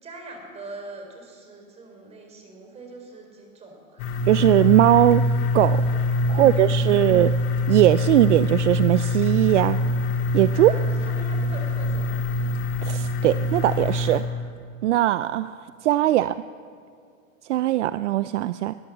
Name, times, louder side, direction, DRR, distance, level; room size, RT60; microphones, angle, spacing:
voice 1, 0.0-4.0 6.3-7.3 10.5-12.5, right 2 dB, 15° right, 3 dB, 4.3 m, -42 dB
sound 1, 4.0-14.2, left 2 dB, 35° left, 2.9 m, -24 dB
voice 2, 4.3-5.2 5.5-5.8 6.3-7.3 7.7-9.8 10.3-10.7 12.8-14.2 14.8-16.3 17.5-18.7, right 14 dB, 60° right, 14 dB, 0.6 m, -19 dB
21.0 x 20.0 x 7.5 m, 2.3 s
supercardioid pair, 160°, 40 cm